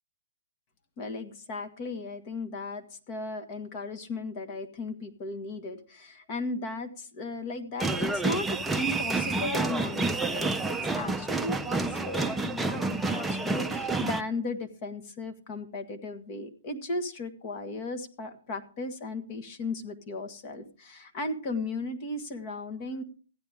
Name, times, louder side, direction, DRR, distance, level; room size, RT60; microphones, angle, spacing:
voice 1, 1.0-23.0, left 2 dB, 40° left, 9 dB, 1.7 m, -36 dB
sound 1, 7.8-14.2, right 3 dB, 5° right, 0.6 m, -29 dB
15.0 x 9.9 x 3.6 m, 0.39 s
hypercardioid pair, 135°, 0 cm